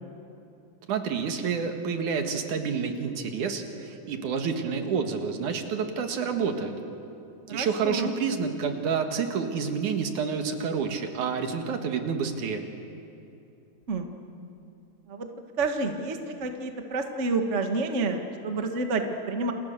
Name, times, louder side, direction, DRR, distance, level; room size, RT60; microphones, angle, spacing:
voice 1, 0.9-6.7 7.5-12.6, right 6 dB, 70° right, 5 dB, 3.1 m, -29 dB
voice 2, 7.5-8.1 13.9-14.1 15.1-15.3 15.6-19.5, right 3 dB, 35° right, 4 dB, 1.3 m, -29 dB
29.5 x 29.0 x 6.8 m, 2.7 s
omnidirectional pair, 3.8 m